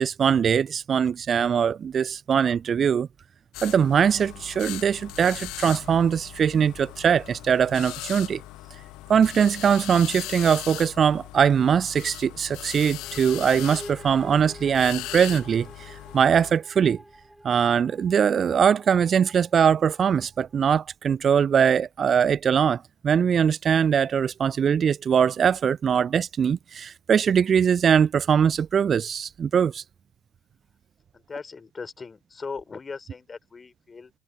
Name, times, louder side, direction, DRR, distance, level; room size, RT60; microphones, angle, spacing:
voice 1, 0.0-3.1 3.6-8.4 9.1-17.0 17.4-29.8, right 7 dB, 35° right, 0.3 m, -22 dB
sound 1, 3.5-16.5, left 19 dB, 55° left, 0.4 m, -39 dB
sound 2, 13.0-20.7, equal, ahead, 2.2 m, -47 dB
voice 2, 31.1-34.1, left 4 dB, 25° left, 5.0 m, -39 dB
figure-of-eight pair, 65°, 0 cm